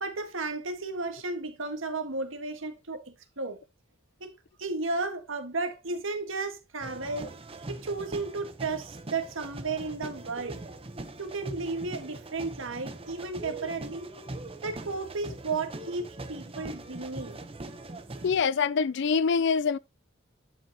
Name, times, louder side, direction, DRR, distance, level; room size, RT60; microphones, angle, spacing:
voice 1, 0.0-3.6 4.2-4.3 4.6-7.3 7.7-10.6 11.2-14.1 14.6-17.4, right 3 dB, 70° right, 1.7 m, -34 dB
sound 1, 6.8-18.4, right 2 dB, 30° right, 0.9 m, -42 dB
voice 2, 18.2-19.8, left 5 dB, 60° left, 0.4 m, -25 dB
11.0 x 5.8 x 2.9 m
head